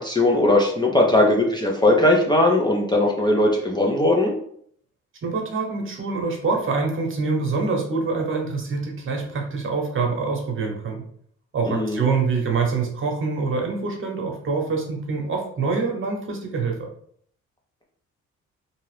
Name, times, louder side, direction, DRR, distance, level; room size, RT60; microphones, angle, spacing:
voice 1, 0.0-4.3 11.7-12.0, left 1 dB, 15° left, -1 dB, 0.5 m, -19 dB
voice 2, 5.2-11.0 11.5-16.9, right 4 dB, 45° right, 1 dB, 1.0 m, -25 dB
2.8 x 2.4 x 3.2 m, 0.62 s
cardioid pair, 90°, 30 cm